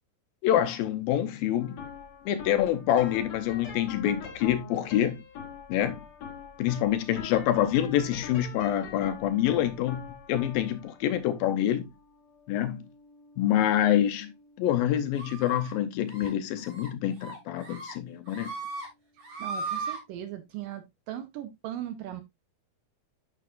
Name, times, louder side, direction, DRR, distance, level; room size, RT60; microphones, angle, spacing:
voice 1, 0.4-1.8 2.3-5.2 5.7-6.0 6.6-11.9 12.5-12.9 13.4-14.3 14.6-18.5, left 11 dB, 75° left, 2.3 m, -26 dB
sound 1, 1.6-18.8, left 6 dB, 55° left, 2.4 m, -45 dB
sound 2, 15.2-15.7 16.1-16.3 16.6-16.9 17.2-17.9 18.3-18.9 19.2-20.0, right 4 dB, 40° right, 4.1 m, -37 dB
voice 2, 19.4-22.2, right 12 dB, 75° right, 2.2 m, -38 dB
9.1 x 6.9 x 2.4 m
omnidirectional pair, 4.5 m